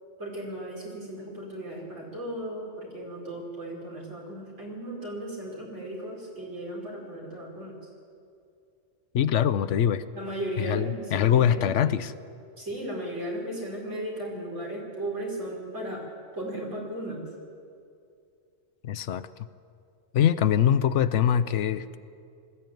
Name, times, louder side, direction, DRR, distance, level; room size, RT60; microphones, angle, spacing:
voice 1, 0.2-7.8 10.1-11.7 12.6-16.0 16.3-17.2, right 1 dB, 70° right, -2 dB, 5.0 m, -36 dB
voice 2, 9.1-10.0 10.6-12.1 18.8-19.3 20.1-22.0, left 9 dB, 75° left, 14 dB, 1.0 m, -23 dB
20.5 x 14.0 x 9.2 m, 2.4 s
omnidirectional pair, 1.3 m